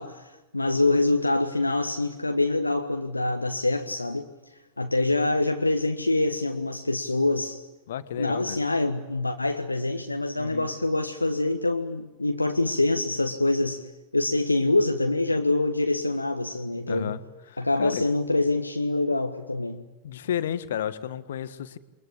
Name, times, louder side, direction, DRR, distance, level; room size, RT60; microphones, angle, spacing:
voice 1, 0.0-4.3 4.8-7.6 8.2-13.9 14.1-17.2 17.6-19.8, left 2 dB, 85° left, 4 dB, 1.4 m, -25 dB
voice 2, 7.9-8.6 10.4-10.7 16.9-17.2 17.5-18.0 20.0-21.8, left 10 dB, 60° left, 12 dB, 1.6 m, -32 dB
29.0 x 23.5 x 8.5 m, 1.0 s
figure-of-eight pair, 90°, 0 cm